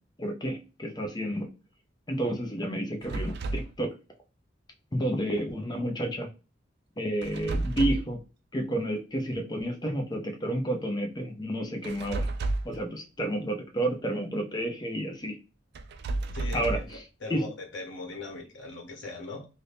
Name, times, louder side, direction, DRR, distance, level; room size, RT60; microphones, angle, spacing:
voice 1, 0.2-1.5 2.1-3.9 4.9-6.3 7.0-8.2 8.5-12.3 12.6-15.4 16.5-17.0 17.3-17.4, right 1 dB, 25° left, 0.6 m, -30 dB
sound 1, 3.0-3.7 7.2-8.2 11.8-12.8 15.7-17.0, right 2 dB, 60° right, 0.3 m, -31 dB
voice 2, 16.3-19.5, left 3 dB, 85° left, 1.0 m, -40 dB
2.7 x 2.7 x 3.3 m
head